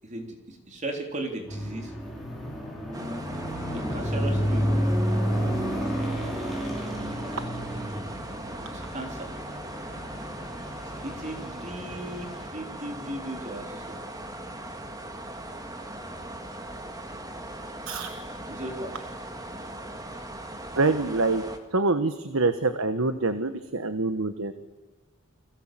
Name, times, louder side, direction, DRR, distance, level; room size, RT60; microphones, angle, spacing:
voice 1, 0.0-1.9 3.7-4.7 8.7-9.3 11.0-14.0 18.5-19.0, right 1 dB, 35° right, 3 dB, 3.6 m, -36 dB
sound 1, 1.5-12.5, equal, ahead, 5.6 m, -31 dB
sound 2, 2.9-21.6, right 1 dB, 20° right, 2.1 m, -39 dB
voice 2, 20.8-21.4 21.7-24.5, right 3 dB, 80° right, 10 dB, 1.3 m, -25 dB
29.5 x 22.5 x 7.6 m, 1.2 s
head